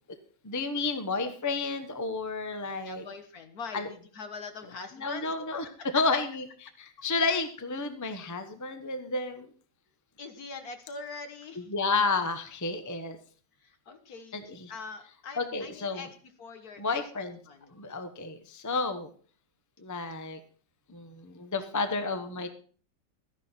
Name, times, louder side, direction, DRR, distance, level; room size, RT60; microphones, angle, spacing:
voice 1, 0.4-3.0 3.7-3.9 4.9-6.4 6.8-9.5 11.6-13.2 14.3-14.7 15.4-16.1 16.8-17.4 17.7-19.1 19.8-20.4 20.9-22.5, left 3 dB, 15° left, 8 dB, 0.8 m, -31 dB
voice 2, 2.8-5.3 5.6-5.9 10.2-11.7 13.6-16.1 16.4-17.0 17.5-17.7, left 4 dB, 60° left, 8 dB, 1.8 m, -43 dB
13.5 x 10.5 x 4.4 m, 0.43 s
omnidirectional pair, 1.9 m